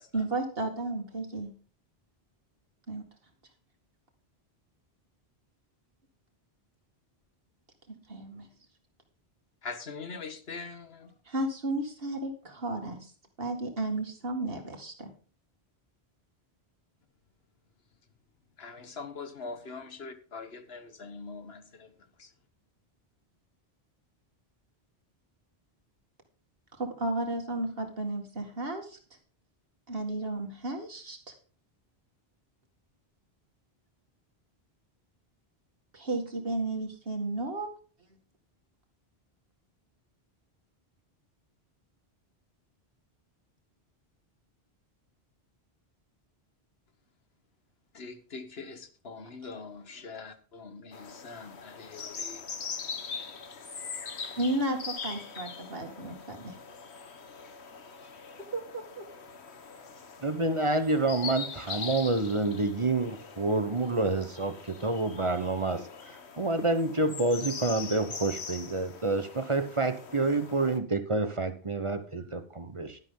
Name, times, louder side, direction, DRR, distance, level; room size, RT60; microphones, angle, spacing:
voice 1, 0.1-1.5 2.9-3.0 7.9-8.5 11.3-13.1 13.4-15.1 26.8-29.0 29.9-31.2 35.9-37.7 54.4-56.6 58.5-59.0, right 2 dB, 65° right, 2.4 m, -33 dB
voice 2, 9.6-11.1 18.6-21.9 22.2-22.3 47.9-52.4, left 4 dB, 70° left, 1.5 m, -43 dB
sound 1, 50.9-70.8, left 5 dB, 85° left, 1.5 m, -42 dB
voice 3, 60.2-73.0, right 2 dB, 30° right, 1.1 m, -28 dB
11.5 x 11.0 x 3.8 m
omnidirectional pair, 1.1 m